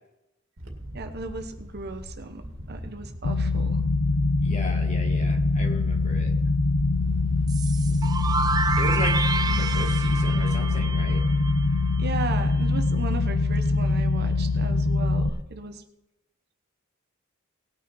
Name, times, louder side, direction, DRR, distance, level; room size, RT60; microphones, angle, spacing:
Wind, 0.6-11.9, equal, 75° right, 2.2 m, -40 dB
voice 1, 0.9-3.8 9.6-9.8 12.0-15.8, right 3 dB, 55° right, 7 dB, 1.1 m, -36 dB
sound 1, 3.2-15.3, left 3 dB, 80° left, 0.8 m, -23 dB
voice 2, 4.4-6.3 8.8-11.2, left 2 dB, 35° left, 1 dB, 2.1 m, -36 dB
sound 2, 7.5-12.2, right 4 dB, 20° right, 0.5 m, -29 dB
19.0 x 6.5 x 4.4 m, 0.89 s
head